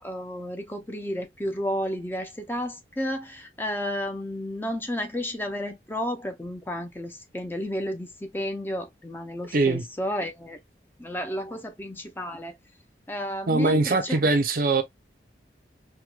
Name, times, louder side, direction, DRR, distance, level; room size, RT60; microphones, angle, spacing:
voice 1, 0.0-10.6 11.0-12.6 13.1-14.2, equal, 10° left, 0.5 m, -32 dB
voice 2, 9.5-9.8 13.5-14.8, right 3 dB, 50° right, 0.6 m, -22 dB
4.5 x 2.2 x 2.3 m
head